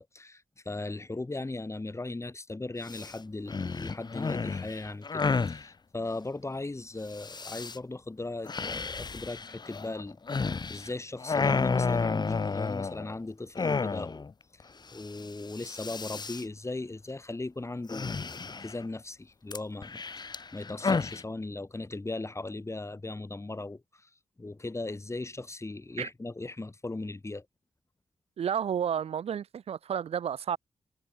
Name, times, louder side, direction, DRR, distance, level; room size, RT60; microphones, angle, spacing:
voice 1, 0.0-14.2 14.9-24.1 24.4-27.5, left 2 dB, 30° left, 3.7 m, -38 dB
sound 1, 2.9-3.1 3.5-5.6 7.1-7.8 8.5-10.9 11.2-13.1 13.5-14.3 14.6-14.7 14.9-15.2 15.5-16.4 17.9-18.8 19.5-21.2, left 4 dB, 45° left, 1.1 m, -31 dB
voice 2, 28.4-30.6, right 8 dB, 85° right, 2.8 m, -31 dB
cardioid pair, 55°, 10 cm